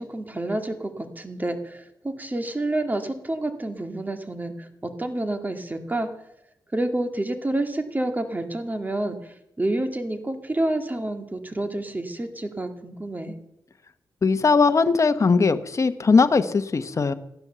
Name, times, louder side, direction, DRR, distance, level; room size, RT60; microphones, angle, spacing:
voice 1, 0.0-6.1 6.7-9.2 9.6-13.4, right 1 dB, 20° right, 6 dB, 2.1 m, -28 dB
voice 2, 14.2-17.1, left 4 dB, 40° left, 10 dB, 1.1 m, -19 dB
14.5 x 10.5 x 6.9 m, 0.80 s
cardioid pair, 65°, 8 cm